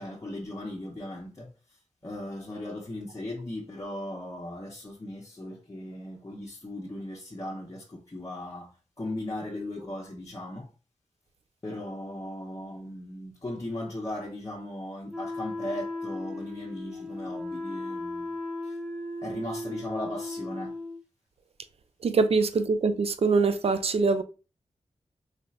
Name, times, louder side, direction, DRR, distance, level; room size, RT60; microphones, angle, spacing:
voice 1, 0.0-1.5 2.0-10.7 11.6-18.3 18.6-18.8 19.2-20.8, left 1 dB, 30° left, 0.7 m, -37 dB
Wind instrument woodwind instrument, 15.1-21.0, left 2 dB, 5° right, 0.9 m, -36 dB
voice 2, 22.0-24.2, right 4 dB, 55° right, 0.4 m, -23 dB
3.2 x 2.8 x 2.4 m
cardioid pair, 45°, 12 cm